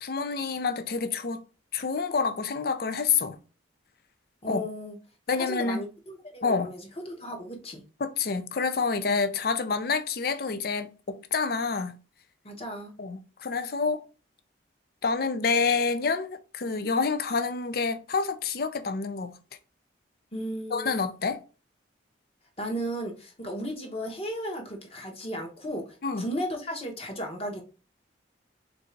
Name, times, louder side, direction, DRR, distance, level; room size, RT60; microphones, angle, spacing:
voice 1, 0.0-1.4 1.7-3.4 4.5-4.6 5.3-5.8 6.4-6.7 8.0-12.0 13.0-14.0 15.0-19.4 20.7-21.4 26.0-26.3, left 5 dB, 50° left, 0.5 m, -28 dB
voice 2, 4.4-5.0 5.4-6.8 7.1-7.8 12.4-12.9 20.3-21.0 22.6-27.6, equal, 30° left, 0.9 m, -35 dB
3.6 x 2.6 x 4.4 m
head